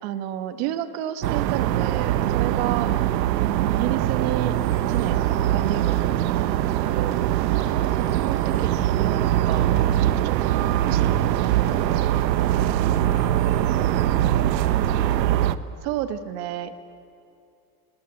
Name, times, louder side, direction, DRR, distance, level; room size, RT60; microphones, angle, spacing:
voice 1, 0.0-2.9 3.7-4.5 4.9-7.2 8.0-11.2 15.8-16.8, right 12 dB, 40° right, 10 dB, 1.2 m, -31 dB
sound 1, 1.2-15.6, right 12 dB, 85° right, 1.0 m, -22 dB
sound 2, 4.7-13.3, left 6 dB, 40° left, 4.1 m, -49 dB
voice 2, 7.7-8.0 10.4-10.6 11.5-12.0 12.6-14.7, left 2 dB, 20° left, -4 dB, 7.7 m, -46 dB
29.0 x 18.0 x 8.9 m, 2.6 s
supercardioid pair, 175°, 49 cm